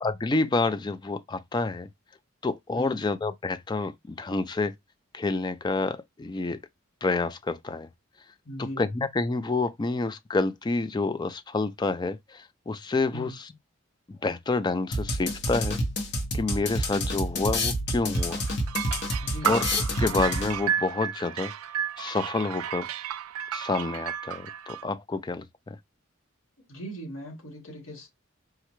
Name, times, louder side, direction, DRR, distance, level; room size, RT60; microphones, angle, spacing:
voice 1, 0.0-1.9 2.4-4.7 5.1-6.6 7.0-7.9 8.6-13.5 14.1-15.8 16.3-18.4 19.4-19.6 20.0-21.5 22.0-22.9 23.5-25.8, left 3 dB, 20° left, 0.3 m, -28 dB
voice 2, 8.4-8.8 13.1-13.3 19.2-19.6 26.6-28.1, equal, 70° left, 2.0 m, -39 dB
sound 1, 14.9-20.8, left 1 dB, 55° left, 0.9 m, -29 dB
sound 2, 18.1-24.8, right 9 dB, 85° right, 0.3 m, -32 dB
4.7 x 2.2 x 3.0 m
head